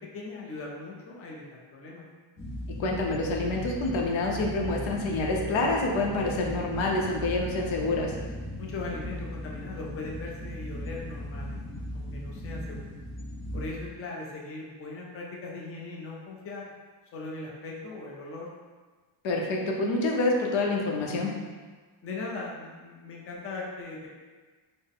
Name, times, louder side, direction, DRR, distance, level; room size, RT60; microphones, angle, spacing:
voice 1, 0.0-2.0 8.6-11.6 11.9-12.9 13.5-16.7 17.1-18.5 22.0-24.1, left 3 dB, 30° left, -2 dB, 0.5 m, -39 dB
sound 1, 2.4-13.9, equal, 50° left, 1.1 m, -37 dB
voice 2, 2.7-8.1 19.2-21.3, left 2 dB, 85° left, 0 dB, 0.7 m, -27 dB
4.0 x 2.0 x 3.6 m, 1.4 s
cardioid pair, 150°, 45 cm